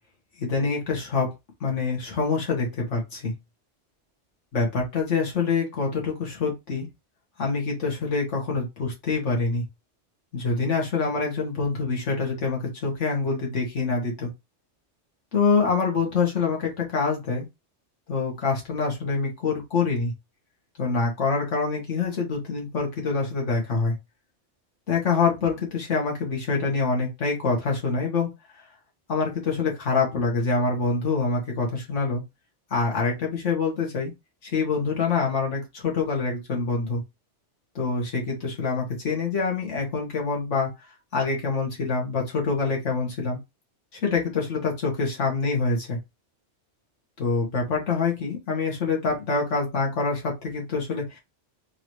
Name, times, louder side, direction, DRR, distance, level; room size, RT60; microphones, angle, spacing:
voice 1, 0.4-1.3 1.6-3.3 4.5-6.9 7.4-9.6 10.3-14.3 15.3-17.4 18.1-20.1 20.8-23.9 24.9-28.3 29.1-32.2 32.7-34.1 34.4-37.0 37.8-40.7 41.1-43.4 43.9-46.0 47.2-51.2, left 4 dB, 80° left, -1 dB, 1.8 m, -25 dB
3.9 x 2.7 x 3.1 m, 0.22 s
omnidirectional pair, 1.2 m